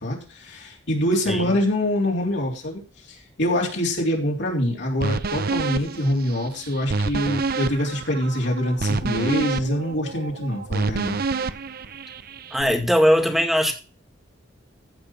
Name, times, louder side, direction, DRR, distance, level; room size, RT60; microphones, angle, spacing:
voice 1, 0.0-2.8 3.1-11.2, left 1 dB, 65° left, 3.6 m, -25 dB
sound 1, 5.0-12.6, right 4 dB, 50° right, 0.7 m, -28 dB
voice 2, 12.5-13.7, equal, ahead, 2.1 m, -19 dB
15.0 x 5.5 x 5.9 m
head